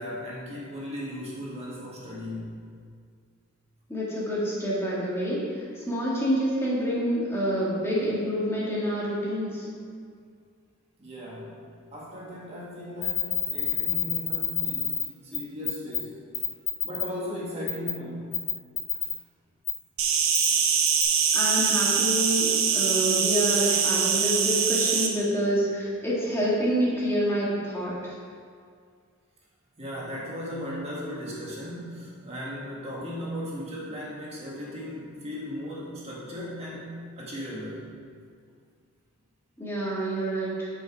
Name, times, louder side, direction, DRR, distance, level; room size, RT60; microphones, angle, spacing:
voice 1, 0.0-2.7 11.0-11.6 11.9-16.2 16.8-18.4 20.5-20.6 29.8-37.8, equal, 30° right, -5 dB, 1.7 m, -37 dB
voice 2, 3.9-5.4 5.8-9.7 21.3-28.1 39.6-40.7, equal, 10° left, -7 dB, 2.0 m, -27 dB
sound 1, 13.0-15.0 15.3-15.4 15.6-16.0 16.3-17.0 17.7-17.9 18.3-19.1 19.7-19.8 20.3-20.5 20.9-21.0, left 10 dB, 35° left, 1.4 m, -27 dB
Insect, 20.0-25.1, right 7 dB, 80° right, 0.9 m, -23 dB
9.1 x 6.1 x 4.8 m, 2.1 s
head